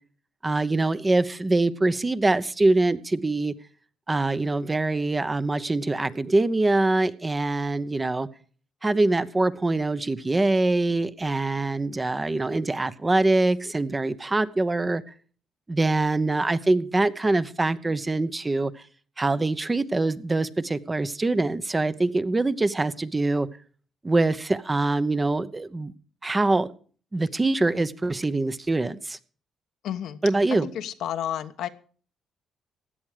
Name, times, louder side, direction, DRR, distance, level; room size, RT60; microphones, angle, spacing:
voice 1, 0.4-3.5 4.1-8.3 8.8-15.0 15.7-18.8 19.2-23.5 24.0-25.9 26.2-26.7 27.1-29.2 30.2-30.7, right 2 dB, 20° right, 0.9 m, -24 dB
voice 2, 29.8-30.2 30.6-31.7, left 10 dB, 80° left, 1.1 m, -31 dB
16.0 x 10.5 x 5.0 m
cardioid pair, 90°, 0 cm